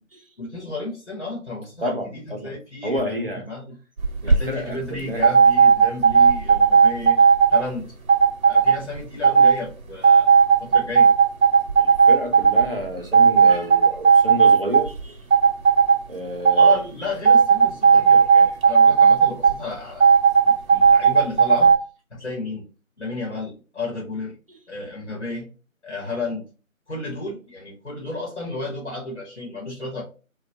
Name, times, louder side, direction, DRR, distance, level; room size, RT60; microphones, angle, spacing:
voice 1, 0.4-3.7 4.2-7.2 7.5-7.9 8.5-10.3 10.6-11.1 16.5-20.1 20.4-21.7 22.1-22.6 23.0-24.3 24.7-25.5 25.8-26.4 26.9-30.0, left 3 dB, 55° left, -2 dB, 1.0 m, -32 dB
voice 2, 1.8-2.6 2.8-3.4 4.2-5.3 11.8-15.2 16.1-16.8, equal, 45° right, 2 dB, 0.5 m, -30 dB
sound 1, 4.0-4.4 5.2-7.6 8.1-8.7 9.2-9.5 10.0-12.6 13.1-15.0 15.3-16.0 16.4-16.8 17.2-19.5 20.0-21.8, right 6 dB, 85° right, 0.6 m, -14 dB
2.1 x 2.1 x 2.7 m, 0.34 s
figure-of-eight pair, 170°, 41 cm